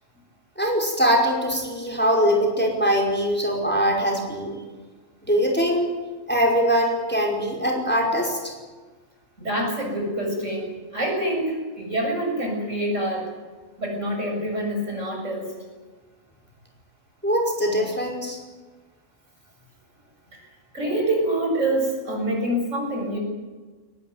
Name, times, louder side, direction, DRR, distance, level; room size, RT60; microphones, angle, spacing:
voice 1, 0.6-4.6 5.2-5.9 6.3-8.5 17.2-18.4, equal, 10° left, 0 dB, 5.1 m, -22 dB
voice 2, 9.4-13.3 13.8-15.5 20.3-20.5 20.7-23.2, right 1 dB, 70° right, 1 dB, 7.9 m, -26 dB
23.0 x 20.0 x 9.4 m, 1.3 s
omnidirectional pair, 1.3 m